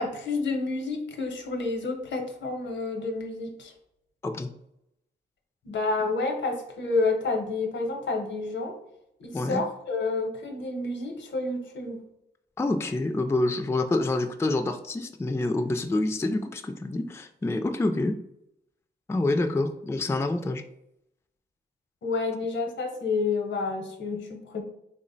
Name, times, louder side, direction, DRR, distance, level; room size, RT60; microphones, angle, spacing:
voice 1, 0.0-3.7 5.6-8.8 9.2-12.0 22.0-24.6, left 3 dB, 80° left, 4 dB, 0.7 m, -29 dB
voice 2, 12.6-18.1 19.1-20.6, left 2 dB, 15° left, 7 dB, 0.3 m, -27 dB
3.5 x 2.0 x 3.9 m, 0.79 s
cardioid pair, 65°, 19 cm